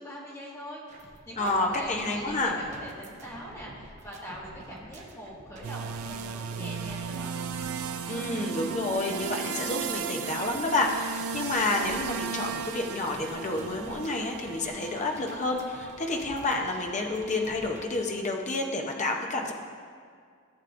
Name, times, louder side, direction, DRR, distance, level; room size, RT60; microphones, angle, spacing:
voice 1, 0.0-7.3, equal, 15° left, -5 dB, 1.8 m, -42 dB
sound 1, 0.9-17.8, right 1 dB, 35° right, 1.0 m, -49 dB
voice 2, 1.4-2.6 8.1-19.5, left 2 dB, 35° left, 1 dB, 0.8 m, -29 dB
sound 2, 5.6-18.2, right 6 dB, 85° right, 0.4 m, -36 dB
15.5 x 7.3 x 2.6 m, 2.1 s
head